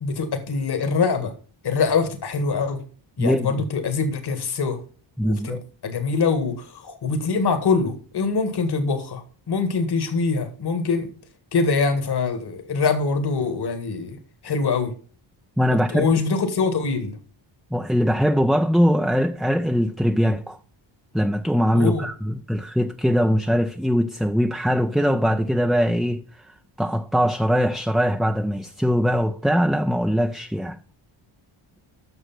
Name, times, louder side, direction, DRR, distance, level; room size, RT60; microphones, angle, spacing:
voice 1, 0.0-1.3 1.6-2.8 3.2-4.8 5.2-11.1 11.5-14.2 14.4-14.9 15.7-17.2 21.7-22.1, left 4 dB, 55° left, 1.9 m, -24 dB
voice 2, 5.2-5.6 15.6-16.1 17.7-20.6 21.1-26.2 26.8-30.8, equal, ahead, 0.5 m, -21 dB
8.1 x 6.3 x 5.9 m
cardioid pair, 105°, 47 cm